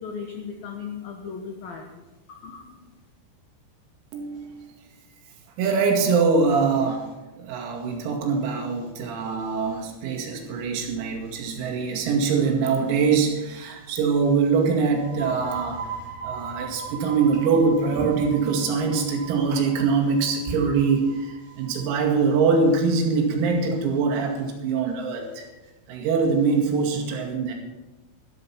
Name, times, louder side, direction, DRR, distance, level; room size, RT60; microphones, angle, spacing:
voice 1, 0.0-1.8 2.3-2.6, left 6 dB, 80° left, 2 dB, 2.1 m, -36 dB
voice 2, 4.1-4.7 5.6-7.1 7.4-15.9 16.2-25.4 25.9-27.6, right 5 dB, 90° right, 2 dB, 5.0 m, -23 dB
sound 1, 14.9-22.3, right 4 dB, 50° right, 4.7 m, -39 dB
13.0 x 12.5 x 5.8 m, 1.1 s
omnidirectional pair, 6.0 m